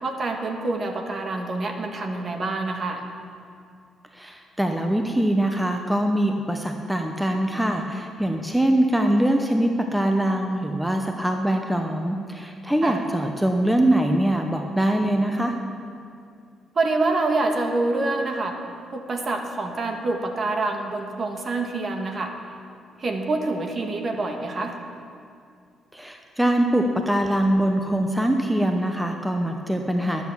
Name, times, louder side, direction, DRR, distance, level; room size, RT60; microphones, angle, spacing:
voice 1, 0.0-3.0 12.8-13.0 16.7-18.5 18.9-22.3 23.0-24.7, right 2 dB, 40° right, 4 dB, 1.6 m, -26 dB
voice 2, 4.1-15.6 25.9-30.2, right 1 dB, 5° right, 4 dB, 0.9 m, -23 dB
12.5 x 8.4 x 7.2 m, 2.4 s
cardioid pair, 90°, 0 cm